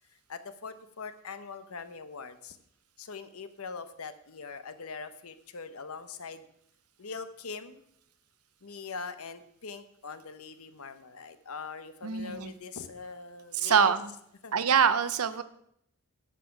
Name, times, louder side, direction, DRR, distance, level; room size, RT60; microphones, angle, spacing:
voice 1, 0.3-2.6 3.0-6.4 7.0-7.8 8.6-13.9 14.4-14.5, left 5 dB, 70° left, 11 dB, 0.9 m, -42 dB
voice 2, 12.0-12.5 13.5-14.1 14.5-15.4, right 6 dB, 80° right, 13 dB, 0.7 m, -25 dB
10.0 x 7.4 x 5.8 m, 0.72 s
head